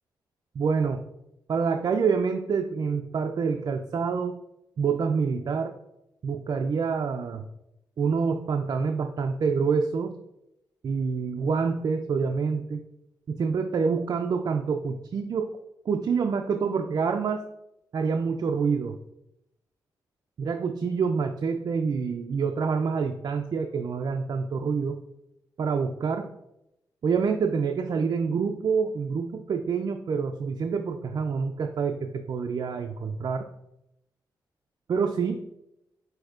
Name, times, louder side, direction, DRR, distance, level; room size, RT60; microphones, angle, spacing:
voice 1, 0.6-1.0 1.5-4.4 4.8-5.7 6.2-7.5 8.0-10.2 10.8-12.8 13.3-15.5 15.9-17.4 17.9-19.0 20.4-25.0 25.6-26.3 27.0-33.4 34.9-35.4, right 5 dB, 55° right, 4 dB, 0.4 m, -27 dB
7.7 x 2.7 x 2.4 m, 0.83 s
cardioid pair, 70°, 8 cm